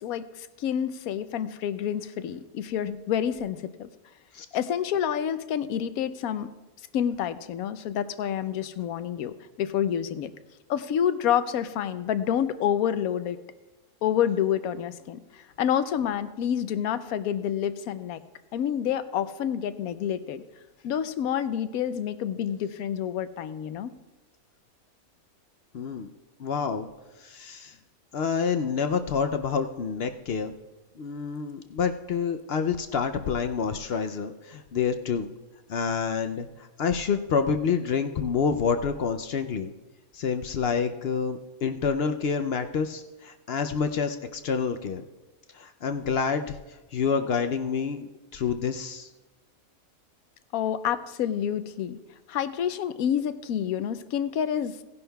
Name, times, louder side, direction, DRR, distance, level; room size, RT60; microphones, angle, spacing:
voice 1, 0.0-3.9 4.5-6.5 6.9-10.3 10.7-13.4 14.0-18.2 18.5-20.4 20.8-23.9 50.5-52.0 52.3-54.8, left 9 dB, 80° left, 12 dB, 1.1 m, -28 dB
voice 2, 25.7-26.1 26.4-26.9 27.2-27.7 28.1-30.5 31.0-35.3 35.7-36.5 36.8-39.7 40.1-45.0 45.5-46.6 46.9-49.1, left 6 dB, 65° left, 7 dB, 0.6 m, -28 dB
17.5 x 11.0 x 2.3 m, 1.1 s
omnidirectional pair, 1.5 m